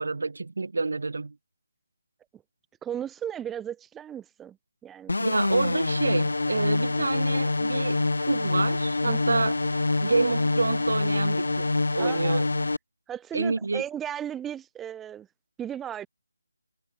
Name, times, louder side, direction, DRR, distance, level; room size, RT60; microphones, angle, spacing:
voice 1, 0.0-1.3 5.2-9.5 10.0-12.5 13.3-13.8, right 3 dB, 60° right, 1.0 m, -28 dB
voice 2, 2.8-4.6 4.8-5.4 9.1-9.4 12.0-12.4 13.1-15.3 15.6-16.1, right 9 dB, 5° right, 0.3 m, -36 dB
sound 1, 5.1-12.8, left 2 dB, 80° left, 0.4 m, -26 dB
figure-of-eight pair, 175°, 0 cm